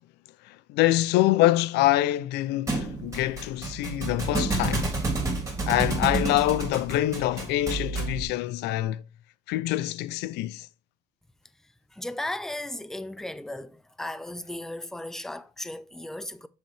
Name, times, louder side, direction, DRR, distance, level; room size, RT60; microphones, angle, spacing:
voice 1, 0.5-4.9 5.7-9.0 9.5-10.7, left 15 dB, 85° left, 0.4 m, -25 dB
Thump thud, 2.7-8.2, right 3 dB, 15° right, 3.1 m, -29 dB
voice 2, 11.9-16.5, left 1 dB, 5° left, 0.5 m, -36 dB
7.3 x 6.0 x 3.3 m
cardioid pair, 110°, 17 cm